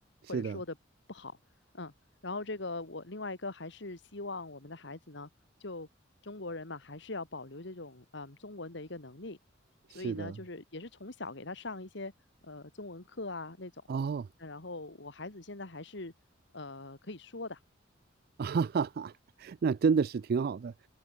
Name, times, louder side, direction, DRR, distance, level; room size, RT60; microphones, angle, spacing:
voice 1, 0.3-0.8 1.1-1.4 1.7-1.9 2.2-5.3 5.6-5.9 6.2-9.4 9.9-12.1 12.4-13.8 14.4-16.1 16.5-17.6, left 2 dB, 65° left, 2.2 m, -41 dB
voice 2, 9.9-10.4 13.9-14.3 18.4-19.1 19.4-20.7, right 5 dB, 50° right, 0.3 m, -30 dB
head